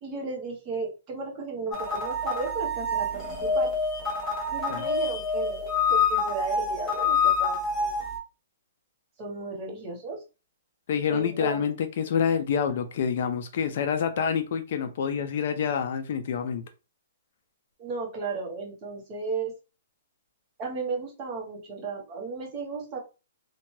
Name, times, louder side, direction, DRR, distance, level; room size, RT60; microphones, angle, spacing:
voice 1, 0.0-3.8 4.5-8.0 9.2-10.2 11.1-11.6 12.0-12.1 17.8-19.6 20.6-23.0, right 4 dB, 20° right, 0 dB, 0.8 m, -34 dB
sound 1, 1.7-8.2, left 4 dB, 10° left, 0.8 m, -27 dB
voice 2, 10.9-16.6, left 7 dB, 45° left, 8 dB, 0.3 m, -27 dB
2.7 x 2.1 x 3.0 m, 0.31 s
hypercardioid pair, 175°, 0 cm